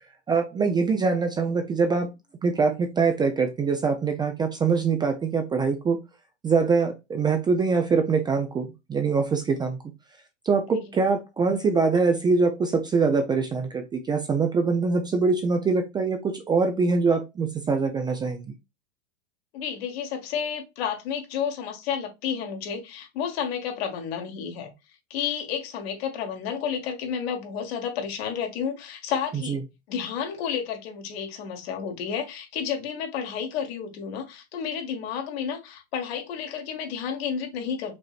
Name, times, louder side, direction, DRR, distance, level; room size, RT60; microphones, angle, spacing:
voice 1, 0.3-2.1 2.4-6.0 6.4-9.8 10.5-18.5 29.5-29.6, right 4 dB, 15° right, 0.4 m, -23 dB
voice 2, 19.5-24.7 25.1-29.6 29.9-38.0, left 7 dB, 65° left, 1.6 m, -31 dB
5.1 x 3.0 x 2.4 m
hypercardioid pair, 125°, 33 cm